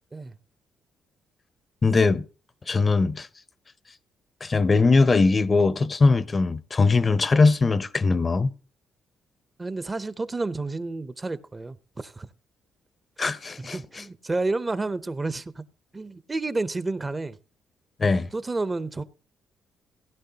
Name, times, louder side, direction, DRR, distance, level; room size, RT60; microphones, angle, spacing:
voice 1, 1.8-2.2 2.7-3.3 4.4-8.5 13.2-14.0 18.0-18.3, left 3 dB, 30° left, 0.6 m, -21 dB
voice 2, 9.6-12.3 13.6-15.6 15.9-17.4 18.3-19.0, right 3 dB, 25° right, 0.6 m, -30 dB
16.5 x 11.0 x 2.8 m
cardioid pair, 90°, 0 cm